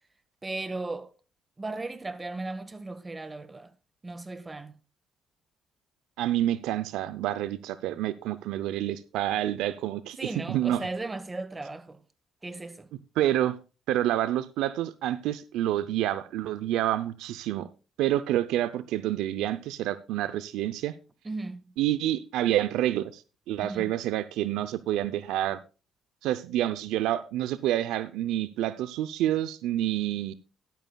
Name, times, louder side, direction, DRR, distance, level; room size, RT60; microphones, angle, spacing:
voice 1, 0.4-1.1 1.6-3.7 4.0-4.7 10.2-12.0 12.4-12.9 21.2-21.7 23.6-23.9, right 2 dB, 25° right, 1.5 m, -36 dB
voice 2, 6.2-10.9 13.2-13.6 13.9-17.7 18.0-20.9 21.8-23.2 23.5-25.6 26.2-30.3, right 13 dB, 80° right, 0.5 m, -28 dB
13.5 x 11.0 x 2.3 m
supercardioid pair, 70°, 0 cm